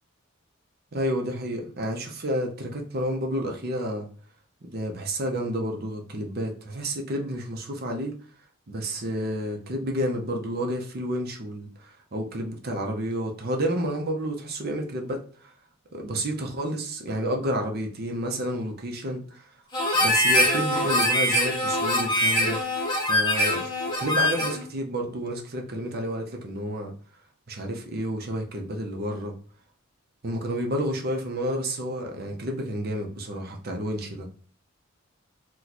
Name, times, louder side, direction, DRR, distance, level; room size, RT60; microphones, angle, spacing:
voice 1, 0.9-4.1 4.6-8.1 8.7-15.5 15.9-19.5 20.0-22.6 23.0-23.6 24.0-26.9 27.5-29.3 30.2-34.3, equal, 45° right, 0.7 m, -30 dB
Harmonica, 19.7-24.6, left 1 dB, 20° left, 0.7 m, -23 dB
3.0 x 2.2 x 4.0 m
head